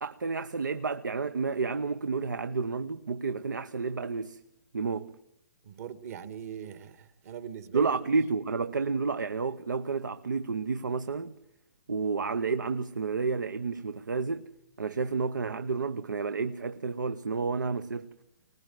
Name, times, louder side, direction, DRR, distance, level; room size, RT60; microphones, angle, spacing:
voice 1, 0.0-4.4 4.7-5.1 7.7-11.3 11.9-14.5 14.8-18.1, right 4 dB, 90° right, 0.9 m, -30 dB
voice 2, 5.6-7.9, right 8 dB, 55° right, 2.0 m, -41 dB
24.5 x 19.5 x 9.3 m
hypercardioid pair, 135°, 10 cm